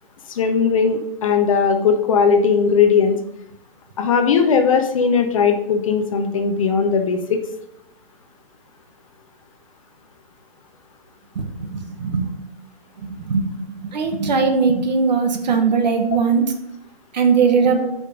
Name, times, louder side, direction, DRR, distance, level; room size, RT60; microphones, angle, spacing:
voice 1, 0.3-3.2 4.0-7.4, left 6 dB, 35° left, 6 dB, 0.7 m, -18 dB
voice 2, 11.7-12.2 13.2-13.5 13.9-16.4 17.1-17.8, right 5 dB, 45° right, 5 dB, 1.2 m, -19 dB
6.6 x 5.2 x 5.1 m, 0.80 s
figure-of-eight pair, 130°, 30 cm